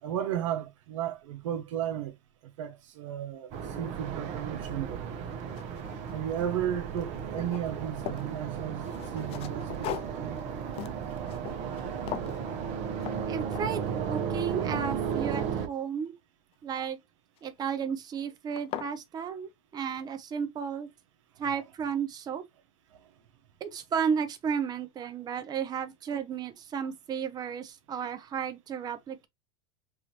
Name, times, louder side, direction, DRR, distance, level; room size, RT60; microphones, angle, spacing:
voice 1, 0.0-2.1 2.6-5.1 6.1-8.9 9.1-10.4 26.1-26.2, right 10 dB, 80° right, 0.9 m, -34 dB
sound 1, 3.5-15.7, right 7 dB, 50° right, 0.9 m, -34 dB
sound 2, 4.6-4.7 5.2-6.7 6.9-8.3 8.8-11.8 12.1-12.4 13.0-13.2 13.5-13.9 14.3-15.9 17.4-17.8 18.2-18.3 18.6-18.9, left 11 dB, 40° left, 0.4 m, -41 dB
voice 2, 13.3-16.1 16.6-17.0 17.4-20.9 21.4-22.4 23.6-29.3, right 7 dB, 25° right, 0.6 m, -33 dB
4.7 x 2.6 x 2.9 m
supercardioid pair, 115°, 16 cm